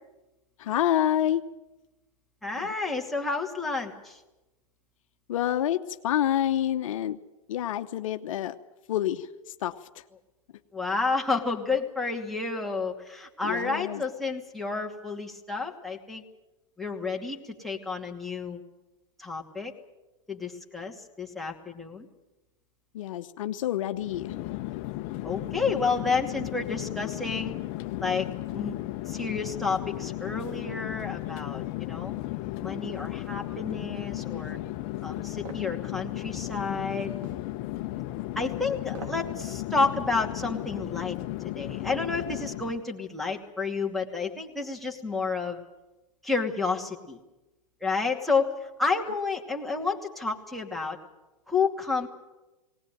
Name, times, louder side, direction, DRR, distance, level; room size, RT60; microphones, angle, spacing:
voice 1, 0.6-1.4 2.6-2.7 5.3-5.8 6.0-7.2 7.5-8.5 8.9-9.3 9.6-9.7 13.4-14.0 22.9-24.3, left 11 dB, 70° left, 8 dB, 1.0 m, -27 dB
voice 2, 2.4-4.2 10.7-16.2 16.8-18.6 19.2-19.7 20.3-22.1 25.2-27.5 28.0-28.3 28.5-28.8 29.1-32.1 32.6-34.6 35.0-37.2 38.4-41.2 41.4-45.6 46.2-47.2 47.8-51.0 51.5-52.1, left 4 dB, ahead, -1 dB, 2.5 m, -30 dB
Chatter / Fixed-wing aircraft airplane, 23.9-42.9, left 16 dB, 45° left, 0.9 m, -35 dB
sound 1, 35.5-35.7 37.2-37.5 38.9-39.3 39.7-39.8, right 4 dB, 70° right, 3.7 m, -42 dB
19.5 x 19.0 x 9.1 m, 1.0 s
hypercardioid pair, 125°, 18 cm